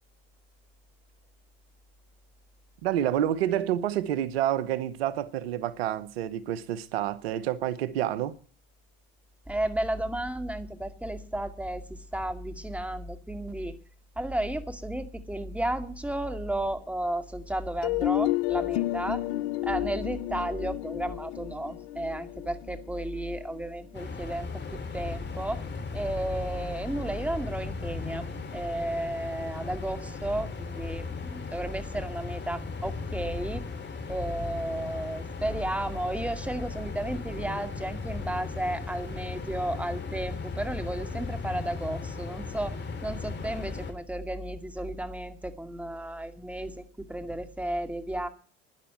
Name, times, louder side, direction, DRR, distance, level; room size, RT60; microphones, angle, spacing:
voice 1, 2.8-8.3, right 11 dB, 85° right, 1.0 m, -28 dB
voice 2, 9.5-13.8 14.2-19.2 19.6-25.6 25.9-33.6 34.1-42.8 43.0-48.3, right 1 dB, 5° right, 2.2 m, -33 dB
sound 1, 17.8-23.6, left 17 dB, 70° left, 0.6 m, -31 dB
sound 2, 23.9-43.9, left 4 dB, 35° left, 3.2 m, -37 dB
12.0 x 10.5 x 8.9 m
hypercardioid pair, 80°, 30 cm